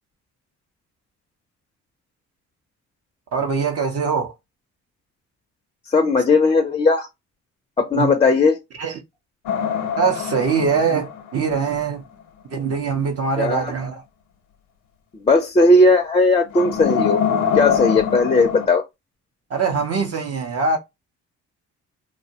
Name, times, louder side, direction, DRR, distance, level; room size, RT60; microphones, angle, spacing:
voice 1, 3.3-4.3 7.9-8.1 8.8-9.0 10.0-12.0 12.5-14.0 19.5-20.8, right 5 dB, 55° right, 0.6 m, -22 dB
voice 2, 5.9-7.1 7.8-8.6 13.4-13.7 15.1-17.2 17.5-18.8, left 3 dB, 20° left, 0.4 m, -17 dB
sound 1, 9.5-11.8 16.5-18.7, left 7 dB, 85° left, 0.6 m, -24 dB
2.5 x 2.0 x 2.7 m
cardioid pair, 90°, 30 cm